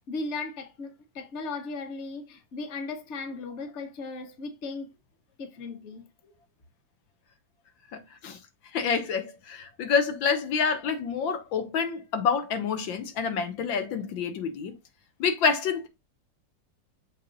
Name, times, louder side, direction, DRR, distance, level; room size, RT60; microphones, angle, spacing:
voice 1, 0.1-4.9 5.4-6.0, left 3 dB, 45° left, 1.2 m, -36 dB
voice 2, 7.9-8.4 8.7-14.8 15.2-15.9, left 6 dB, 85° left, 1.8 m, -27 dB
7.2 x 3.4 x 3.9 m
omnidirectional pair, 2.0 m